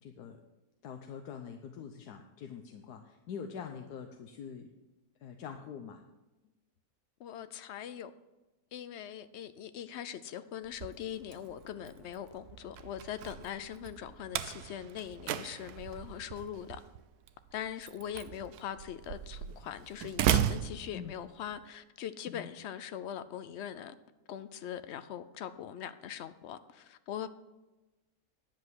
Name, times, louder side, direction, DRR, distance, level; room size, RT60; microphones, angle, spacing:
voice 1, 0.0-0.4 0.8-4.7 5.2-6.0 20.9-21.2 22.3-22.5, left 7 dB, 85° left, 5 dB, 1.3 m, -44 dB
voice 2, 7.2-8.1 8.7-16.8 17.5-23.9 24.3-27.3, left 9 dB, 60° left, 13 dB, 0.8 m, -41 dB
Slam, 10.6-21.6, right 10 dB, 85° right, 1.2 m, -37 dB
10.5 x 7.7 x 6.2 m, 1.1 s
omnidirectional pair, 1.6 m